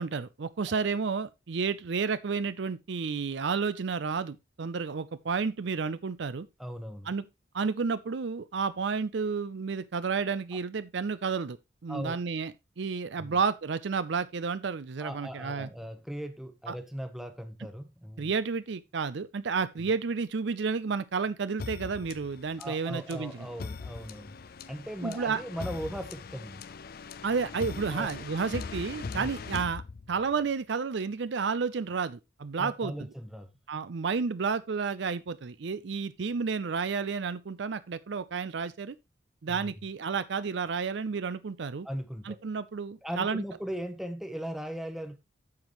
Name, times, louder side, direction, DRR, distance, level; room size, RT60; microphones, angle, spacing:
voice 1, 0.0-6.5 7.1-7.2 7.5-11.6 11.8-12.5 12.8-15.7 16.7-16.8 18.2-23.5 25.0-25.4 27.2-29.8 30.1-32.9 33.7-39.0 39.4-41.9 42.2-43.4, right 5 dB, 60° right, 0.5 m, -31 dB
voice 2, 6.6-7.1 10.5-10.6 11.9-12.2 13.2-13.4 15.0-18.3 19.8-19.9 22.6-24.4 24.7-26.6 27.9-28.1 29.1-29.7 32.6-33.5 39.5-39.7 41.8-42.4 43.0-45.2, equal, ahead, 0.9 m, -38 dB
sound 1, 21.6-30.4, left 4 dB, 50° left, 0.5 m, -41 dB
9.5 x 7.0 x 3.0 m
head